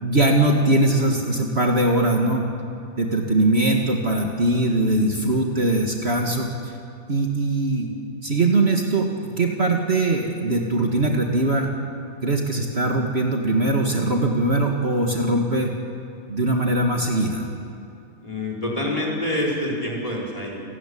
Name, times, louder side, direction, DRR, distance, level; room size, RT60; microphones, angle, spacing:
voice 1, 0.0-2.5 3.0-6.7 7.1-7.9 8.2-11.7 12.2-15.7 16.3-17.5, right 2 dB, 45° right, 1 dB, 2.1 m, -21 dB
voice 2, 18.2-20.6, left 1 dB, 25° left, -4 dB, 5.2 m, -26 dB
29.0 x 14.5 x 10.0 m, 2.5 s
omnidirectional pair, 1.5 m